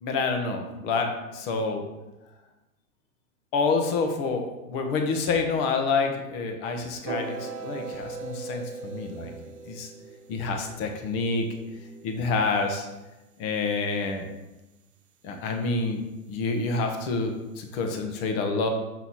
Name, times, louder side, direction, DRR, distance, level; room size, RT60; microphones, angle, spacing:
voice 1, 0.0-1.8 3.5-9.3 9.7-9.9 10.3-11.5 12.0-12.9 13.4-14.3 15.2-16.0 16.3-18.7, left 4 dB, 40° left, 4 dB, 1.3 m, -28 dB
sound 1, 7.0-13.1, right 4 dB, 30° right, 1.2 m, -40 dB
6.5 x 5.5 x 4.2 m, 1.0 s
hypercardioid pair, 110°, 45 cm